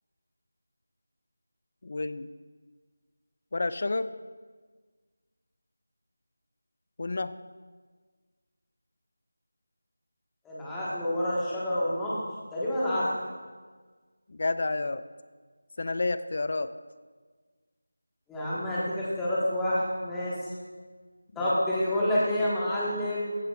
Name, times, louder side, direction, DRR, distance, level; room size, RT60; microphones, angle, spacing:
voice 1, 1.8-2.3 3.5-4.1 7.0-7.3 14.3-15.0 15.8-16.7 21.4-21.5, left 3 dB, 35° left, 13 dB, 0.4 m, -30 dB
voice 2, 10.4-12.2 12.5-13.1 18.3-20.4 21.3-23.3, left 1 dB, 5° left, -9 dB, 1.3 m, -28 dB
15.5 x 10.5 x 2.3 m, 1.5 s
figure-of-eight pair, 175°, 0 cm